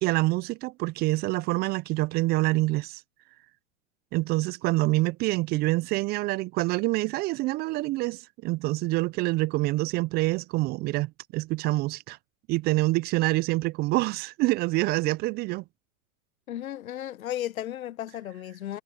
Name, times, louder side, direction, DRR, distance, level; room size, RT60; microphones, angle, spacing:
voice 1, 0.0-3.0 4.1-12.2 12.5-15.6, right 20 dB, 25° right, 0.4 m, -26 dB
voice 2, 16.5-18.8, left 12 dB, 80° left, 0.9 m, -34 dB
hypercardioid pair, 105°, 41 cm